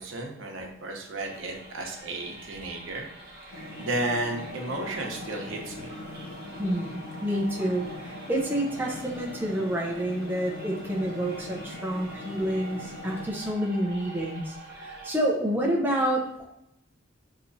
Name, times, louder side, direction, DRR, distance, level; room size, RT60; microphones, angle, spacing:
voice 1, 0.0-3.1 3.8-5.9, right 2 dB, 80° right, 1 dB, 0.8 m, -33 dB
sound 1, 1.2-15.2, right 1 dB, 50° right, 0.9 m, -45 dB
sound 2, 3.5-13.3, left 1 dB, 85° left, 0.6 m, -42 dB
voice 2, 6.6-16.5, right 1 dB, 10° right, -2 dB, 0.5 m, -29 dB
5.6 x 2.9 x 2.6 m, 0.79 s
head